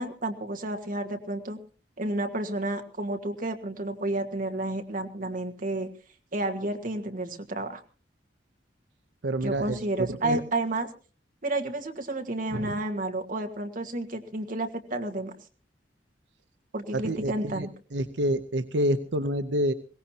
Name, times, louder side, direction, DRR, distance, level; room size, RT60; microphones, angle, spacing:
voice 1, 0.0-1.6 2.0-5.9 6.3-7.8 9.4-10.9 11.4-15.3 16.7-17.7, right 2 dB, 50° right, 5 dB, 1.7 m, -31 dB
voice 2, 9.2-10.4 12.5-12.7 16.9-17.7 17.9-19.7, right 1 dB, 85° right, 10 dB, 0.7 m, -28 dB
21.5 x 17.5 x 2.9 m, 0.37 s
head